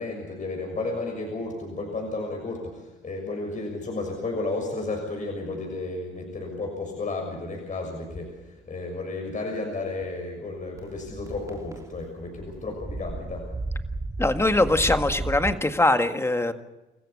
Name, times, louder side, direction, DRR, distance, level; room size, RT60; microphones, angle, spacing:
voice 1, 0.0-8.4 8.7-13.5, left 2 dB, 40° left, 2 dB, 6.5 m, -32 dB
sound 1, 10.8-15.5, right 2 dB, 15° right, 3.0 m, -34 dB
voice 2, 14.2-16.5, left 2 dB, 15° left, 8 dB, 1.8 m, -22 dB
28.0 x 15.0 x 8.6 m, 1.0 s
cardioid pair, 90°, 20 cm